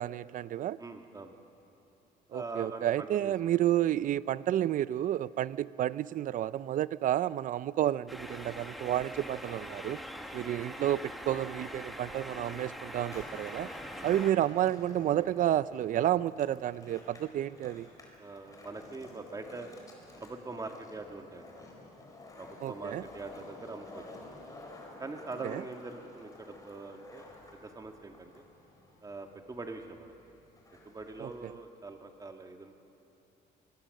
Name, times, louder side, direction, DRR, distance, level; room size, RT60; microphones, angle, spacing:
voice 1, 0.0-0.8 2.3-10.0 10.3-13.7 14.0-17.9 22.6-23.0 25.4-25.6 31.2-31.5, right 12 dB, 50° right, 18 dB, 0.5 m, -30 dB
voice 2, 0.8-1.3 2.3-3.3 10.1-10.3 13.9-14.1 18.2-19.7 20.2-21.7 22.4-24.4 25.0-28.4 29.0-30.1 30.9-32.8, right 3 dB, 20° right, 4 dB, 1.7 m, -43 dB
sound 1, 8.1-14.3, equal, ahead, 1.5 m, -43 dB
Skateboard, 13.0-31.6, left 2 dB, 20° left, 4.2 m, -52 dB
24.5 x 21.5 x 6.5 m, 2.9 s
cardioid pair, 110°, 17 cm